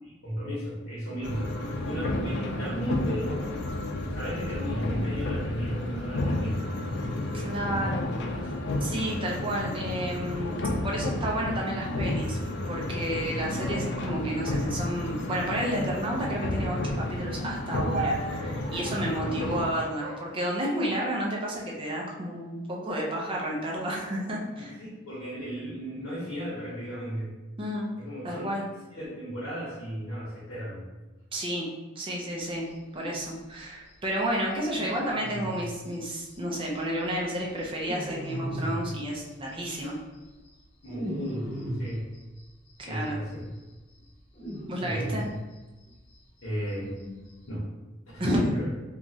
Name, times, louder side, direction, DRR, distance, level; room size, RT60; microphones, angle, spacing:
voice 1, 0.0-3.6 4.1-6.6 24.5-27.4 28.0-28.6 28.9-30.8 40.8-41.5 41.8-42.1 42.9-43.4 44.8-45.2 46.4-47.0 47.5-47.7 48.1-48.7, equal, 75° left, -7 dB, 0.9 m, -35 dB
sound 1, 1.2-19.7, left 1 dB, 55° left, 0.3 m, -31 dB
voice 2, 7.3-8.1 8.8-12.4 12.7-24.8 27.6-27.9 28.2-28.6 31.3-31.7 32.0-32.7 32.9-39.9 42.8-43.2 44.7-45.3 48.2-48.4, right 1 dB, 25° right, -3 dB, 0.4 m, -31 dB
sound 2, 17.9-19.2 20.0-21.2 22.0-22.4 22.8-23.4 24.1-25.1, right 2 dB, 65° right, 0.8 m, -38 dB
sound 3, 32.6-33.3 33.6-33.7 33.9-34.0 34.2-34.3 34.5-37.0 37.3-39.5 39.8-42.7 43.0-43.1 43.4-46.1 46.4-46.5 46.7-47.5, equal, 30° left, 0.9 m, -37 dB
3.0 x 2.3 x 2.6 m, 1.2 s
head